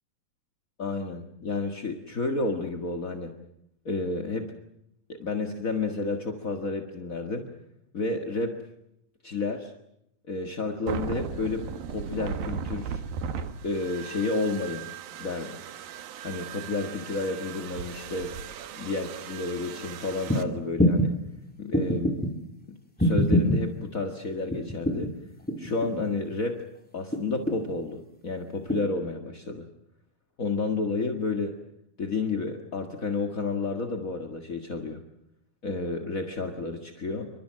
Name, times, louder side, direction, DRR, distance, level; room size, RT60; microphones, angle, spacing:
voice 1, 0.8-3.3 3.8-4.5 5.2-7.5 7.9-8.6 9.2-9.7 10.3-11.6 11.9-13.0 13.6-14.8 15.2-15.6 16.2-18.3 18.8-21.1 21.6-22.3 22.7-25.1 25.6-26.6 26.9-29.7 30.4-31.6 32.0-35.0 35.6-37.3, left 3 dB, 40° left, 4 dB, 1.2 m, -31 dB
sound 1, 10.9-20.4, right 7 dB, 75° right, 3.3 m, -37 dB
sound 2, 20.3-20.4 20.8-21.1 21.7-22.3 23.0-23.6 24.5-25.1 25.5-26.1 27.1-27.8 28.7-28.8, equal, 5° left, 2.7 m, -24 dB
27.5 x 25.0 x 7.6 m, 0.81 s
omnidirectional pair, 4.2 m